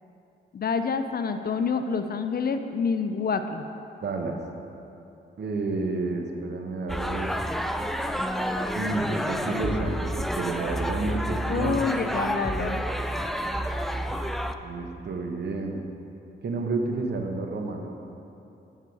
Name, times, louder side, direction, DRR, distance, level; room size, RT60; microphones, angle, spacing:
voice 1, 0.5-3.7 11.5-12.8, left 5 dB, 50° left, 8 dB, 0.6 m, -28 dB
voice 2, 4.0-4.4 5.4-7.3 8.7-11.8 14.6-15.8 16.4-17.9, right 3 dB, 60° right, 3 dB, 1.1 m, -30 dB
sound 1, 6.9-14.6, equal, ahead, 0.4 m, -29 dB
9.5 x 5.7 x 4.7 m, 2.8 s
cardioid pair, 65°, 20 cm